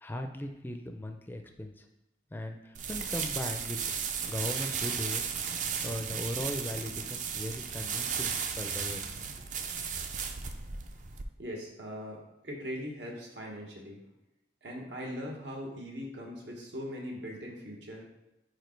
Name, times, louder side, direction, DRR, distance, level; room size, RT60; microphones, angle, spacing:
voice 1, 0.0-1.9 2.3-3.8 4.2-5.2 5.8-9.1, left 1 dB, 10° left, 5 dB, 0.4 m, -38 dB
sound 1, 2.7-11.2, right 6 dB, 45° right, 0.5 m, -35 dB
voice 2, 11.4-14.0 14.6-18.0, equal, 85° right, -1 dB, 1.5 m, -40 dB
4.9 x 4.8 x 4.5 m, 0.91 s
head